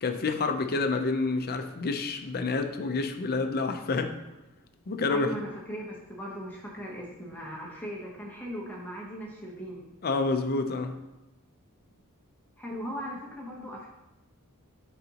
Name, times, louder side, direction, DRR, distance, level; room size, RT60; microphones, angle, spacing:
voice 1, 0.0-4.1 4.9-5.3 10.0-11.0, left 3 dB, 45° left, 7 dB, 0.5 m, -28 dB
voice 2, 5.1-9.8 12.6-13.9, equal, 10° left, -3 dB, 0.9 m, -38 dB
12.0 x 4.0 x 2.9 m, 0.98 s
head